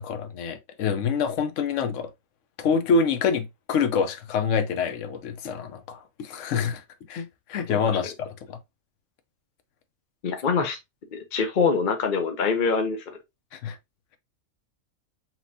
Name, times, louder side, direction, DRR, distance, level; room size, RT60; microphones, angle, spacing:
voice 1, 0.0-2.1 2.6-6.8 7.1-8.6 13.5-13.8, left 5 dB, 65° left, 1.0 m, -26 dB
voice 2, 10.2-10.8 11.1-13.0, left 5 dB, 45° left, 0.8 m, -24 dB
5.9 x 3.0 x 2.6 m
omnidirectional pair, 1.5 m